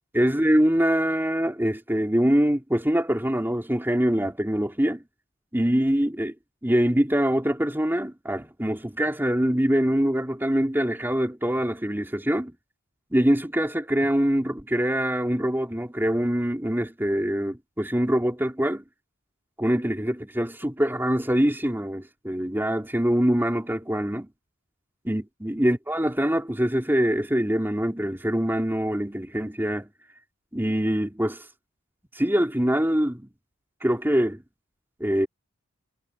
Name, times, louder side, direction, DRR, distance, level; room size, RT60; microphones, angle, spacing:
voice 1, 0.1-5.0 5.5-6.3 6.6-12.5 13.1-18.8 19.6-24.3 25.0-29.9 30.5-31.5 32.1-33.3 33.8-34.4 35.0-35.3, equal, 10° right, 3.1 m, -24 dB
head